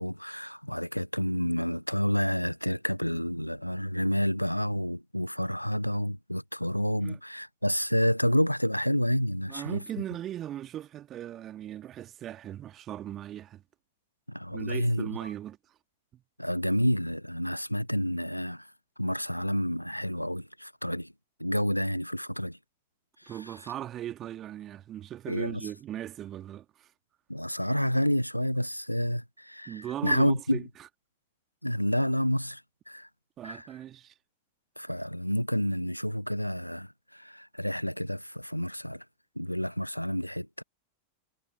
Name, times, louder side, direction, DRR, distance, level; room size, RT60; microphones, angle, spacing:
voice 1, 0.0-9.8 14.3-15.2 16.4-18.7 19.0-21.1 21.4-22.6 23.2-23.7 25.3-25.6 27.3-30.6 31.6-32.6 32.9-33.1 33.4-33.7 34.8-39.0 39.4-40.6, equal, 90° left, 1.2 m, -29 dB
voice 2, 9.5-13.6 14.5-15.6 16.1-16.2 23.3-26.9 29.7-30.6 33.4-34.1, right 11 dB, 30° right, 2.6 m, -38 dB
figure-of-eight pair, 90°, 0 cm